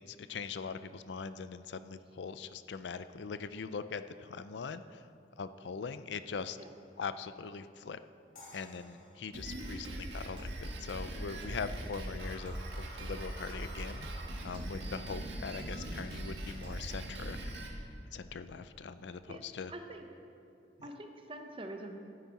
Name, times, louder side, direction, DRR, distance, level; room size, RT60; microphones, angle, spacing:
voice 1, 0.0-5.1 5.4-6.6 7.0-8.0 8.5-14.1 14.4-17.4 18.1-19.7 20.8-20.9, left 5 dB, 85° left, 12 dB, 0.5 m, -42 dB
sound 1, 8.4-11.4, left 1 dB, 50° left, 2.7 m, -58 dB
Drum kit, 9.3-17.7, right 1 dB, 80° right, 1.8 m, -41 dB
voice 2, 19.7-20.0 20.8-22.0, right 1 dB, 30° right, 4 dB, 0.9 m, -45 dB
14.0 x 9.4 x 4.1 m, 2.5 s
head